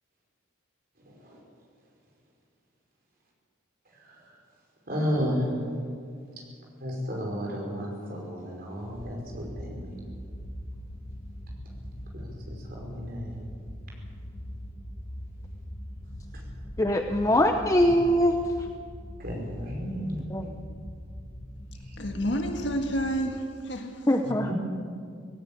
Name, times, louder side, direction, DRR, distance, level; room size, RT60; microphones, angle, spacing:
voice 1, 4.9-5.5 6.8-10.0 12.1-13.5 19.2-20.2 24.2-24.5, equal, 45° right, -1 dB, 5.3 m, -33 dB
sound 1, 8.9-23.2, equal, 30° left, 1.4 m, -42 dB
voice 2, 16.8-18.4 20.3-20.5 24.1-24.5, equal, 15° left, 5 dB, 0.7 m, -22 dB
voice 3, 22.0-24.1, equal, 60° left, 3 dB, 1.8 m, -29 dB
18.0 x 17.0 x 8.6 m, 2.2 s
head